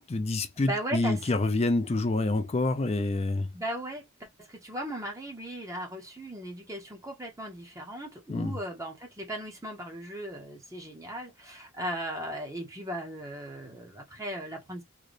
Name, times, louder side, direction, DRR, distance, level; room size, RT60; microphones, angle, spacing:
voice 1, 0.0-3.5 8.3-8.6, left 2 dB, 30° left, 0.4 m, -27 dB
voice 2, 0.6-1.4 3.5-14.8, right 1 dB, 15° right, 0.7 m, -37 dB
3.8 x 2.1 x 3.2 m
head